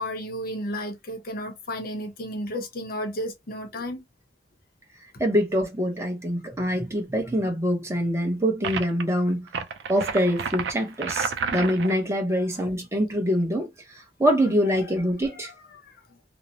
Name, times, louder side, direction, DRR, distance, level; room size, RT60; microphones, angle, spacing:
voice 1, 0.0-4.0 12.3-12.6 15.4-15.5 15.8-15.9, equal, 55° left, 0.7 m, -33 dB
voice 2, 5.2-9.5 9.9-13.7 14.2-15.5, equal, 15° right, 0.8 m, -24 dB
sound 1, 8.6-9.0 9.5-12.0, right 5 dB, 70° right, 0.4 m, -30 dB
2.7 x 2.0 x 2.6 m
head